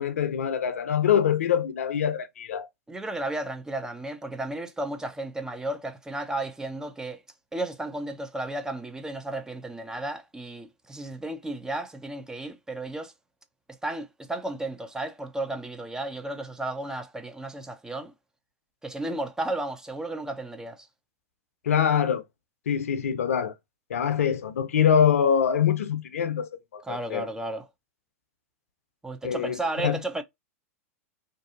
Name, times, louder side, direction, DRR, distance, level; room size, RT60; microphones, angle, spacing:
voice 1, 0.0-2.7 21.6-22.2 22.7-23.5 23.9-27.3 29.2-30.0, left 8 dB, 75° left, 0.5 m, -24 dB
voice 2, 2.9-7.2 7.5-13.1 13.8-18.1 18.8-20.9 26.8-27.7 29.0-30.2, right 2 dB, 10° right, 0.4 m, -33 dB
2.6 x 2.3 x 2.4 m
hypercardioid pair, 100°, 8 cm